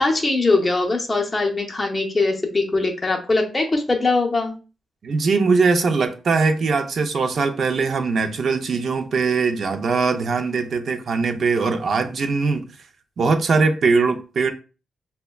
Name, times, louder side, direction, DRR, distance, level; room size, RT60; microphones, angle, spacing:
voice 1, 0.0-4.5, left 3 dB, 15° left, 0.6 m, -21 dB
voice 2, 5.0-12.7 13.2-14.5, right 4 dB, 50° right, 0.4 m, -21 dB
5.2 x 2.1 x 2.2 m
wide cardioid pair, 155°, 0 cm